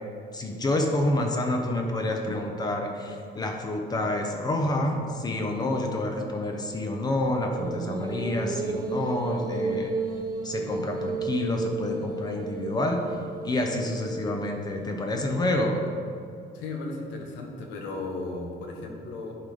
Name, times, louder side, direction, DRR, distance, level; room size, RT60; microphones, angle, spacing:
voice 1, 0.3-9.9 10.4-13.0 13.4-15.9, left 1 dB, 20° left, 2 dB, 0.6 m, -28 dB
sound 1, 7.6-15.0, right 3 dB, 20° right, 0.5 m, -33 dB
voice 2, 16.5-19.4, left 2 dB, 85° left, 1 dB, 1.3 m, -35 dB
11.0 x 4.9 x 3.9 m, 2.4 s
cardioid pair, 165°, 18 cm